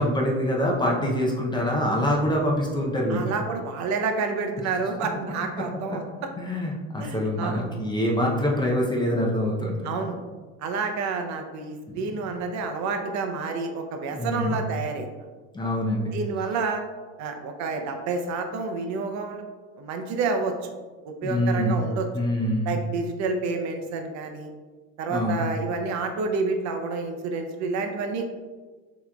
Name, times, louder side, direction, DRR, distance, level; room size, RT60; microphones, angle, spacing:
voice 1, 0.0-3.3 5.9-6.0 6.4-10.0 11.9-12.1 14.1-14.6 15.5-16.1 21.2-21.8 22.1-22.8 25.1-25.4, equal, 15° left, -2 dB, 0.5 m, -25 dB
voice 2, 3.1-6.1 7.0-7.7 9.8-10.2 10.6-15.1 16.1-16.8 17.2-19.4 19.8-20.7 21.0-22.1 22.6-24.5 25.0-28.3, right 4 dB, 55° right, 5 dB, 0.6 m, -29 dB
5.9 x 3.0 x 2.3 m, 1.3 s
supercardioid pair, 125°, 35 cm